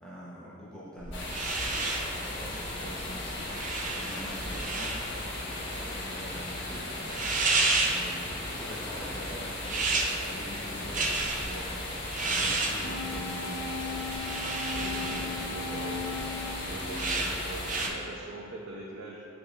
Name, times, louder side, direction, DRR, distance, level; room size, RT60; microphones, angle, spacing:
voice 1, 0.0-14.4 14.9-16.4 17.0-17.4, equal, 5° left, -9 dB, 0.9 m, -45 dB
sound 1, 1.0-17.9, right 3 dB, 40° right, 0.6 m, -33 dB
sound 2, 1.1-17.9, left 1 dB, 65° left, 1.2 m, -36 dB
sound 3, 12.8-17.9, left 4 dB, 85° left, 0.7 m, -38 dB
voice 2, 14.7-19.3, right 1 dB, 75° right, -3 dB, 0.7 m, -43 dB
10.0 x 4.7 x 2.5 m, 2.6 s
head